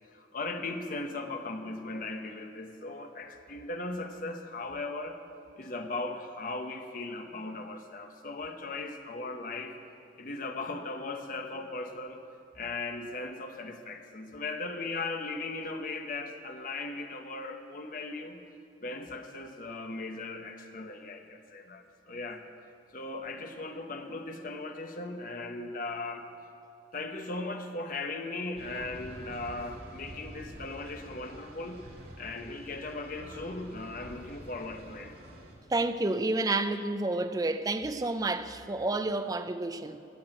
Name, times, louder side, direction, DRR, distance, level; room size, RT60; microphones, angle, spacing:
voice 1, 0.1-5.2 5.6-9.7 10.2-12.2 12.5-18.4 18.8-22.4 22.9-26.3 26.9-31.8 32.2-35.1, left 3 dB, 50° left, 0.9 m, -38 dB
sound 1, 28.5-35.5, equal, 60° right, 2.6 m, -48 dB
voice 2, 35.7-40.0, right 2 dB, 20° right, 0.4 m, -30 dB
13.5 x 6.3 x 8.7 m
head